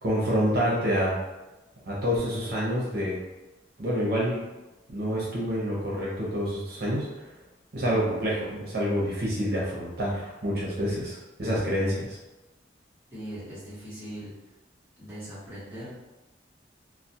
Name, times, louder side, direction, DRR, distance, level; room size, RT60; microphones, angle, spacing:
voice 1, 0.0-1.2 1.9-3.2 3.8-4.4 4.9-7.3 7.7-12.2, equal, 55° right, -6 dB, 0.7 m, -27 dB
voice 2, 13.1-14.3 15.0-15.9, equal, 10° right, -11 dB, 0.9 m, -40 dB
2.3 x 2.0 x 2.7 m, 1.1 s
head